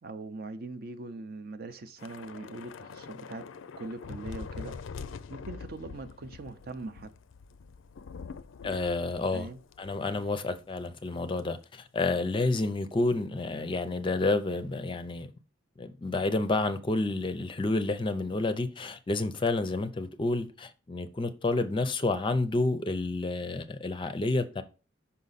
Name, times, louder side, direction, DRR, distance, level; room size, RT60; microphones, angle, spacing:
voice 1, 0.0-3.4 3.8-4.8 5.3-7.1 9.3-9.6, right 2 dB, 50° right, 0.6 m, -41 dB
Thunder / Rain, 2.0-10.6 10.8-11.0 11.4-11.6, left 5 dB, 80° left, 0.4 m, -44 dB
voice 2, 8.6-9.5 9.8-15.3 15.8-24.6, left 2 dB, 25° left, 0.5 m, -29 dB
5.7 x 5.3 x 4.0 m
head